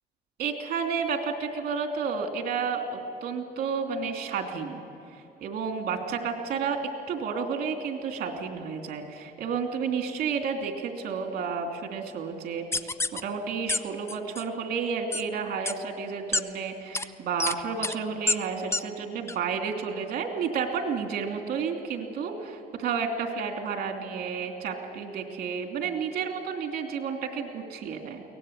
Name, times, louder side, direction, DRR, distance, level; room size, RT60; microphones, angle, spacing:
voice 1, 0.4-4.8 5.4-6.8 7.1-28.2, right 6 dB, 65° right, 4 dB, 3.0 m, -31 dB
sound 1, 12.7-13.2 13.7-13.8 14.1-14.4 15.1-15.2 15.7-15.8 16.3-16.4 16.9-17.1 17.4-17.5 17.8-18.0 18.3-18.4 18.7-18.8 19.3-19.4, left 3 dB, 15° left, 0.7 m, -27 dB
23.0 x 18.5 x 8.3 m, 2.9 s
cardioid pair, 110°, 17 cm